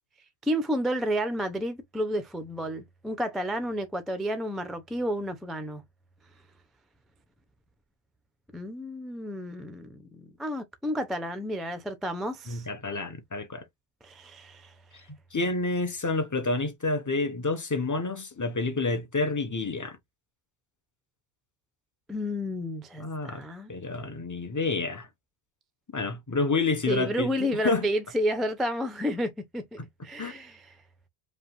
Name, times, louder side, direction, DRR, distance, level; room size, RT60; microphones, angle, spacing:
voice 1, 0.4-5.8 8.5-12.7 14.0-14.7 22.1-23.7 26.9-30.7, equal, ahead, 0.3 m, -31 dB
voice 2, 12.5-13.6 15.1-20.0 23.0-23.4 23.7-25.1 25.9-27.9 29.8-29.9 30.2-30.3, left 3 dB, 20° left, 0.7 m, -29 dB
5.2 x 2.5 x 2.9 m
omnidirectional pair, 1.1 m